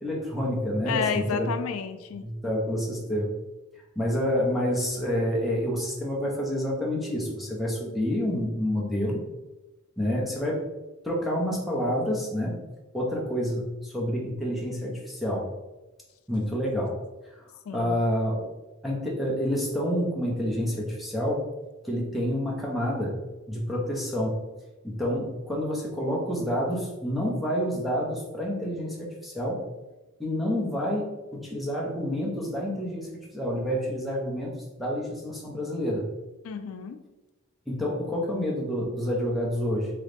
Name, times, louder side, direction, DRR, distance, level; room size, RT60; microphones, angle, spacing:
voice 1, 0.0-1.5 2.2-3.3 4.0-9.2 10.0-10.7 11.0-12.6 12.9-15.5 16.3-17.0 17.7-18.5 18.8-21.4 21.8-23.2 23.5-24.4 24.8-29.6 30.2-36.1 37.7-39.9, equal, ahead, -4 dB, 0.8 m, -28 dB
voice 2, 0.8-2.2 17.7-18.0 36.4-37.0, left 6 dB, 85° left, 8 dB, 0.4 m, -31 dB
3.8 x 3.1 x 3.4 m, 1.1 s
head